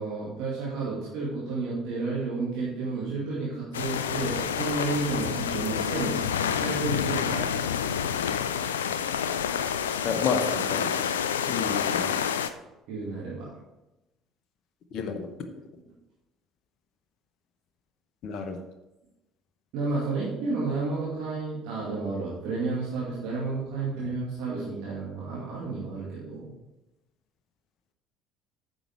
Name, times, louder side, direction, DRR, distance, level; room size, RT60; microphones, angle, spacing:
voice 1, 0.0-6.2 6.6-7.6 12.9-13.5 19.7-26.5, right 3 dB, 60° right, -6 dB, 2.2 m, -31 dB
sound 1, 3.7-12.5, left 8 dB, 80° left, 0.4 m, -28 dB
voice 2, 10.0-10.9 11.5-12.2 14.9-15.3 18.2-18.6, left 5 dB, 50° left, 6 dB, 0.9 m, -30 dB
9.0 x 6.3 x 4.7 m, 0.97 s
figure-of-eight pair, 55°, 0 cm